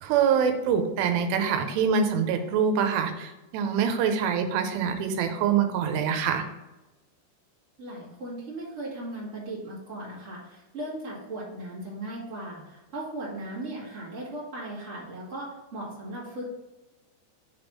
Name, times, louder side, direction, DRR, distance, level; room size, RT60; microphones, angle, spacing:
voice 1, 0.0-6.4, right 7 dB, 90° right, 6 dB, 2.8 m, -25 dB
voice 2, 7.8-16.5, right 1 dB, 35° right, -6 dB, 1.2 m, -37 dB
6.4 x 3.5 x 5.5 m, 1.0 s
omnidirectional pair, 4.9 m